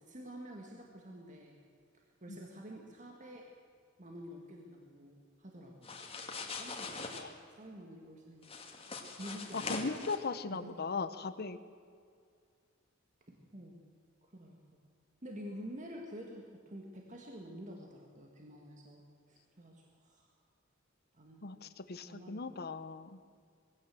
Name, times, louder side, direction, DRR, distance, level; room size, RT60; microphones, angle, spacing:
voice 1, 0.0-1.6 1.9-3.4 4.0-6.0 6.5-8.5 9.2-10.0 10.5-10.8 13.3-13.8 14.2-14.6 15.2-20.3 21.1-21.5 22.1-22.4, equal, 40° right, 1 dB, 2.0 m, -49 dB
sound 1, 5.8-7.2 8.4-10.2, left 4 dB, 30° left, 2.1 m, -42 dB
voice 2, 9.5-11.6 21.4-23.2, left 4 dB, 50° left, 12 dB, 0.9 m, -38 dB
21.0 x 16.5 x 7.7 m, 2.2 s
head